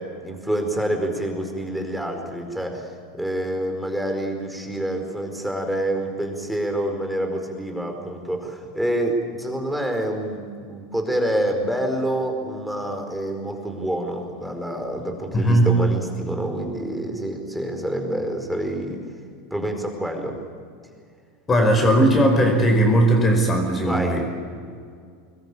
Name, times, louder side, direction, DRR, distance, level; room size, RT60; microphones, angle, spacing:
voice 1, 0.0-19.0 19.5-20.4 23.8-24.2, right 1 dB, ahead, 3 dB, 4.9 m, -27 dB
voice 2, 15.3-15.7 21.5-24.3, right 1 dB, 20° left, 3 dB, 4.9 m, -18 dB
25.5 x 21.0 x 8.5 m, 2.2 s
figure-of-eight pair, 80°, 0 cm